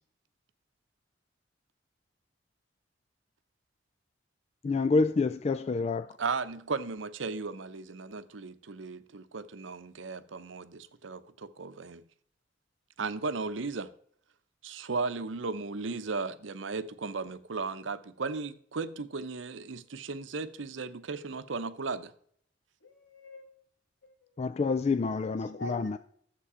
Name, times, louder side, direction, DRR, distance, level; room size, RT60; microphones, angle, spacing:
voice 1, 4.6-6.2 24.4-26.0, left 4 dB, 35° left, 0.3 m, -28 dB
voice 2, 6.2-12.0 13.0-13.9 14.6-22.1, right 4 dB, 80° right, 0.7 m, -36 dB
voice 3, 22.8-23.5 24.0-24.1 25.1-26.0, left 1 dB, 75° left, 2.2 m, -46 dB
11.5 x 7.7 x 4.9 m
head